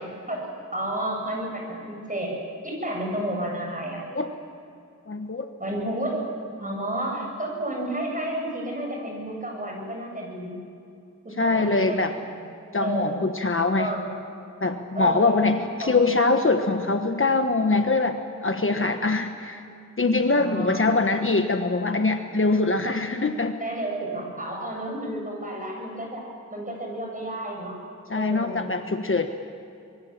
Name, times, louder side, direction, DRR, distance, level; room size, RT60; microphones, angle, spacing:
voice 1, 0.3-2.4 2.6-4.2 5.6-6.3 6.6-10.6 11.2-12.4 12.8-13.2 13.8-14.1 14.9-16.0 20.3-21.0 23.6-26.2 26.5-27.8 28.1-28.7, right 1 dB, 25° right, 0 dB, 7.7 m, -31 dB
voice 2, 5.1-5.5 11.4-12.1 12.7-13.9 14.6-19.6 20.0-23.6 28.1-29.3, left 3 dB, 40° left, 6 dB, 1.2 m, -23 dB
25.5 x 23.5 x 7.4 m, 2.5 s
wide cardioid pair, 100°, 31 cm